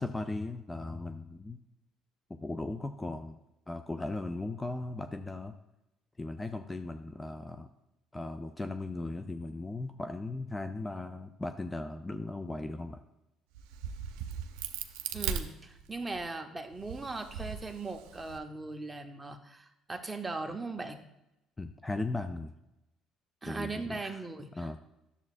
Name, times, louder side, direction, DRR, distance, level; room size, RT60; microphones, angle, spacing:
voice 1, 0.0-1.6 2.3-3.4 3.7-5.5 6.2-7.7 8.1-13.0 21.6-22.5 23.4-24.2 24.6-24.8, left 2 dB, 15° left, 8 dB, 0.4 m, -37 dB
Crack, 13.5-16.2 16.7-18.4, right 8 dB, 90° right, 0.5 m, -38 dB
voice 2, 15.1-21.0 23.4-24.8, right 3 dB, 20° right, 6 dB, 0.9 m, -39 dB
10.5 x 7.0 x 2.5 m, 0.90 s
supercardioid pair, 90°, 0 cm